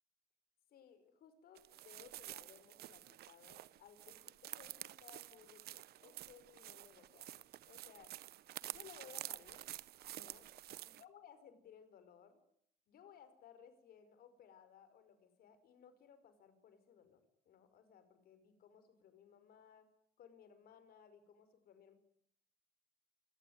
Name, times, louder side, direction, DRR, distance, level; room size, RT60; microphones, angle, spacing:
voice 1, 0.7-8.1 8.6-9.7 10.1-10.5 10.8-12.4 12.9-17.2 17.5-19.9 20.2-21.9, left 8 dB, 65° left, 12 dB, 5.4 m, -61 dB
sound 1, 1.6-11.0, right 14 dB, 70° right, 1.0 m, -50 dB
27.5 x 19.5 x 9.6 m, 0.72 s
cardioid pair, 110°, 17 cm